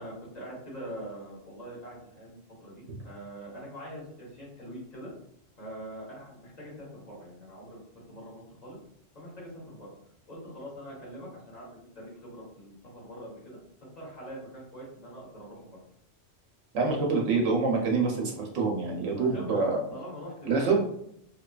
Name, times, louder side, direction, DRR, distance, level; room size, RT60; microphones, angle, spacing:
voice 1, 0.0-5.1 5.6-8.8 9.1-9.9 10.3-13.6 14.0-15.8 19.1-20.8, equal, 35° left, -6 dB, 1.1 m, -43 dB
voice 2, 16.7-19.8 20.5-20.8, right 4 dB, 85° right, 0 dB, 0.9 m, -26 dB
2.7 x 2.2 x 2.3 m, 0.72 s
omnidirectional pair, 1.2 m